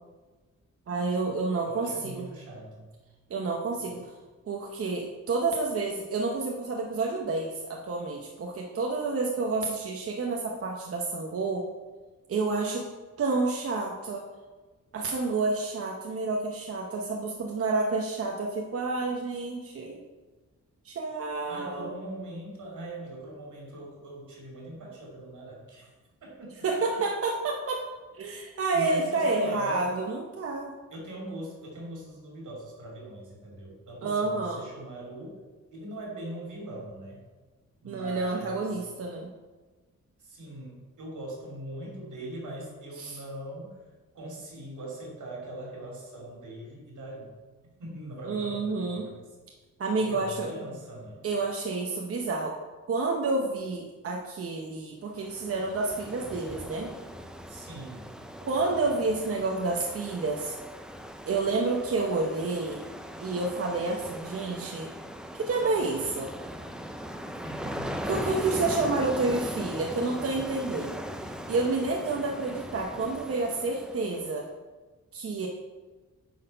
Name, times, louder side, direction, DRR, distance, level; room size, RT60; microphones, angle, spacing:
voice 1, 0.9-2.2 3.3-4.1 4.5-11.6 12.3-12.8 13.2-14.2 14.9-20.0 20.8-22.0 26.6-27.8 28.2-30.7 34.0-34.6 37.8-39.3 43.0-43.2 48.3-49.1 49.8-50.5 51.2-52.6 52.9-56.9 58.5-60.6 61.3-62.8 63.2-64.9 65.3-66.3 68.0-70.9 71.5-74.4 75.1-75.5, right 3 dB, 50° right, 0 dB, 0.8 m, -29 dB
voice 2, 1.6-2.9 3.9-4.0 21.5-25.9 26.2-26.6 28.7-29.9 30.9-35.4 35.7-37.2 37.8-38.7 40.2-43.8 44.1-47.3 47.8-49.2 50.0-51.3 57.5-58.1 67.4-68.1, right 1 dB, 85° right, -3 dB, 2.9 m, -41 dB
Ocean, 55.2-74.3, equal, 5° right, 0.3 m, -39 dB
9.3 x 4.3 x 5.4 m, 1.3 s
wide cardioid pair, 180°, 30 cm